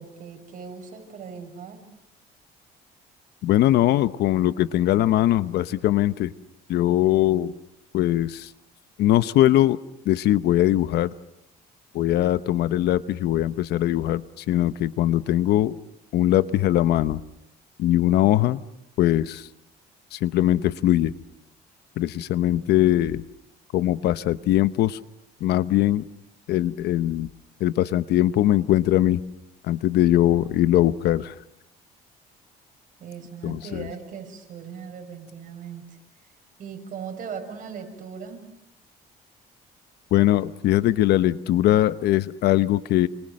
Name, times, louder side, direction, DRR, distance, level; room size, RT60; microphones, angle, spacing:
voice 1, 0.0-1.8 33.0-36.0 36.6-38.4, right 6 dB, 50° right, 4 dB, 6.7 m, -38 dB
voice 2, 3.4-6.3 6.7-7.5 7.9-8.5 9.0-9.8 10.1-11.1 11.9-15.8 16.1-17.2 17.8-18.6 19.0-19.5 20.1-21.1 22.0-23.2 23.7-25.0 25.4-26.0 26.5-27.3 27.6-29.2 29.6-31.4 33.4-33.9 40.1-43.1, left 13 dB, 75° left, 14 dB, 1.0 m, -21 dB
29.5 x 27.0 x 6.6 m, 0.84 s
cardioid pair, 110°, 17 cm